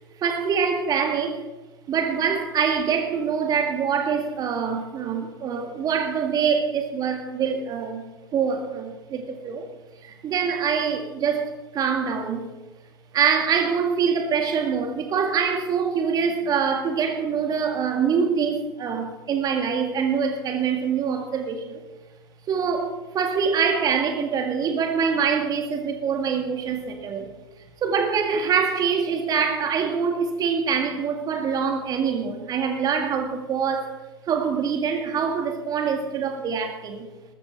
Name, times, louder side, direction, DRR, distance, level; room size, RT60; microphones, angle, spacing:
voice 1, 0.2-1.4 1.9-8.0 8.3-9.6 10.0-12.5 13.1-21.8 22.5-27.3 27.8-33.9 34.3-37.1, right 6 dB, 30° right, 5 dB, 2.0 m, -24 dB
20.0 x 13.5 x 3.5 m, 1.2 s
figure-of-eight pair, 85°, 12 cm